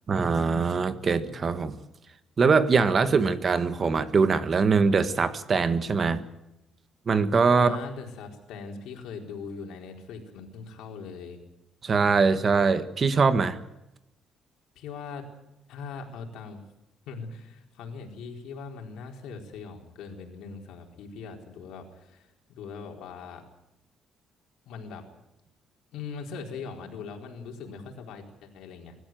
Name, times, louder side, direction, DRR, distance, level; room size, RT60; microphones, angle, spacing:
voice 1, 0.1-1.8 2.4-6.2 7.1-7.8 11.8-13.6, right 5 dB, 35° right, 11 dB, 1.5 m, -22 dB
voice 2, 7.5-11.4 14.8-15.3 15.7-16.6 17.1-23.4 24.6-25.0 25.9-28.9, left 5 dB, 85° left, 2 dB, 4.3 m, -40 dB
24.5 x 13.5 x 9.2 m, 0.90 s
cardioid pair, 130°, 0 cm